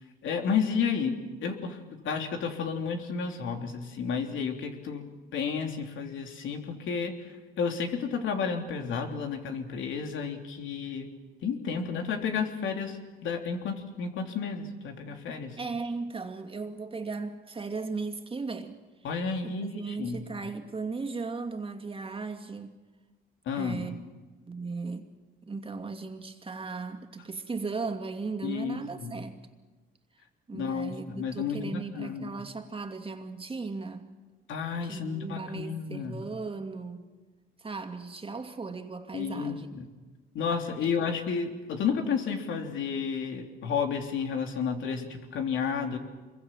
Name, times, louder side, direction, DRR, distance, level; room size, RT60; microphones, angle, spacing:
voice 1, 0.2-1.8 2.0-5.0 5.3-7.1 7.6-11.1 11.4-15.6 19.0-20.2 23.4-23.8 28.4-29.2 30.5-32.4 34.5-36.2 39.1-39.9 40.3-46.0, left 6 dB, 75° left, 4 dB, 3.3 m, -31 dB
voice 2, 15.5-18.8 19.4-22.7 23.5-24.0 24.5-25.1 25.5-29.4 30.5-34.1 34.8-37.1 37.6-39.8 40.8-41.2, right 4 dB, 25° right, 5 dB, 2.6 m, -37 dB
25.5 x 23.0 x 7.5 m, 1.3 s
cardioid pair, 90°, 20 cm